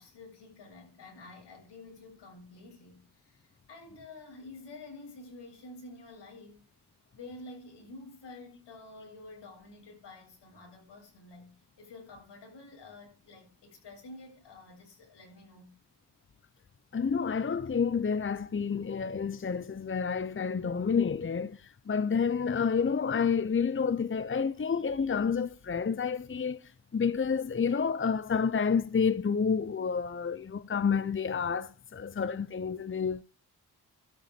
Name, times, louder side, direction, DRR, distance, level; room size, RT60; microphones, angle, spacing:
voice 1, 0.0-6.6 7.1-15.7, left 2 dB, 85° left, 7.8 m, -49 dB
voice 2, 16.9-21.6 21.9-26.6 26.9-33.2, left 6 dB, 30° left, 0.8 m, -29 dB
12.5 x 5.6 x 8.9 m
cardioid pair, 55°, 41 cm